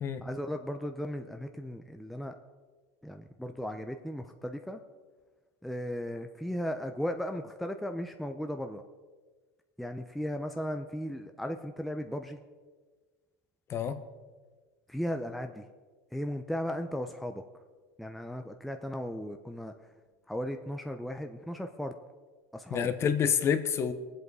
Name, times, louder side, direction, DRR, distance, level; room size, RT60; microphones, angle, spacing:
voice 1, 0.2-2.3 3.0-4.8 5.6-8.8 9.8-12.4 14.9-15.6 16.1-17.4 18.0-19.7 20.3-21.9 22.5-22.9, equal, ahead, 5 dB, 0.6 m, -36 dB
voice 2, 22.7-23.9, left 7 dB, 35° left, 10 dB, 1.0 m, -28 dB
22.5 x 8.0 x 4.8 m, 1.4 s
supercardioid pair, 140°, 8 cm